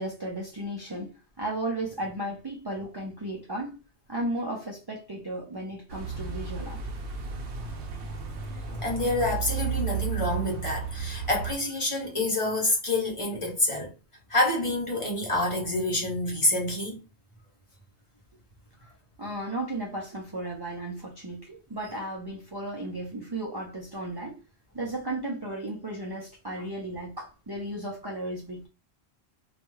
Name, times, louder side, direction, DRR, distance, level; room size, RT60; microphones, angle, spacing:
voice 1, 0.0-3.8 4.1-6.8 19.2-24.4 24.7-28.7, right 1 dB, 40° right, 0.3 m, -34 dB
sound 1, 5.9-11.6, right 6 dB, 85° right, 0.9 m, -33 dB
voice 2, 8.7-13.9 14.3-17.0, left 2 dB, 35° left, 0.7 m, -27 dB
2.3 x 2.2 x 3.0 m
omnidirectional pair, 1.1 m